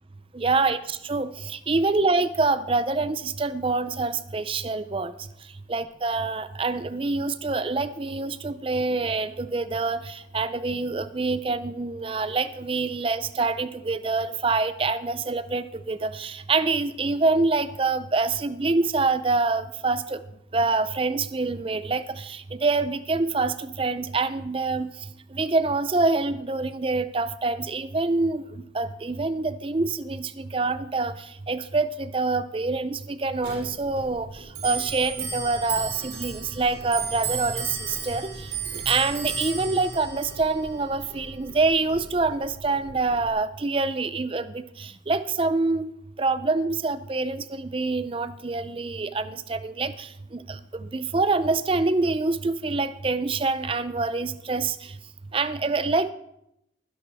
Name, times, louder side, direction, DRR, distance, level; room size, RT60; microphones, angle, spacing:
voice 1, 0.3-5.1 5.7-20.2 20.5-24.9 25.3-28.4 28.7-38.3 38.7-45.9 46.2-54.9 55.3-56.1, right 3 dB, 30° right, 14 dB, 0.5 m, -26 dB
Clock, 33.4-43.3, right 5 dB, 60° right, 4.1 m, -34 dB
20.0 x 11.0 x 3.5 m, 0.83 s
head